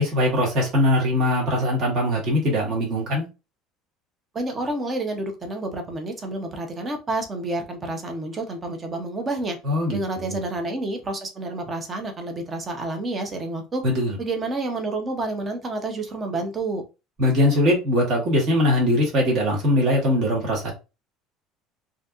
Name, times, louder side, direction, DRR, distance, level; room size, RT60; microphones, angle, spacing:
voice 1, 0.0-3.3 9.6-10.4 13.8-14.2 17.2-20.7, left 1 dB, 40° right, 1.5 m, -21 dB
voice 2, 4.3-9.6 9.9-13.8 14.2-16.8, right 2 dB, 20° right, 0.6 m, -29 dB
3.9 x 2.7 x 2.4 m
cardioid pair, 175°, 0 cm